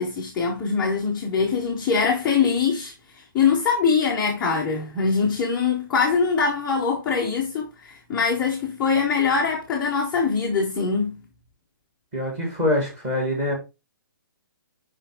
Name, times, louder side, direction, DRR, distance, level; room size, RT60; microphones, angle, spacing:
voice 1, 0.0-2.9 3.3-11.1, left 5 dB, 5° left, 0.4 m, -23 dB
voice 2, 12.1-13.5, left 1 dB, 15° right, 1.7 m, -24 dB
5.6 x 5.0 x 3.3 m
hypercardioid pair, 180°, 12 cm